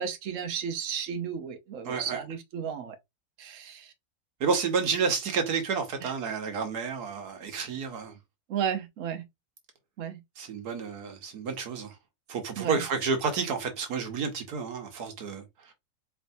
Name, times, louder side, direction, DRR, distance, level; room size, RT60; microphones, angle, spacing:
voice 1, 0.0-2.9 3.4-3.9 6.0-6.1 8.5-9.2 10.0-10.2 12.6-12.8, right 8 dB, 60° right, 1.1 m, -33 dB
voice 2, 1.8-2.2 4.4-8.2 10.4-12.0 12.3-15.7, right 5 dB, 75° right, 1.6 m, -30 dB
4.7 x 3.2 x 2.6 m
omnidirectional pair, 1.7 m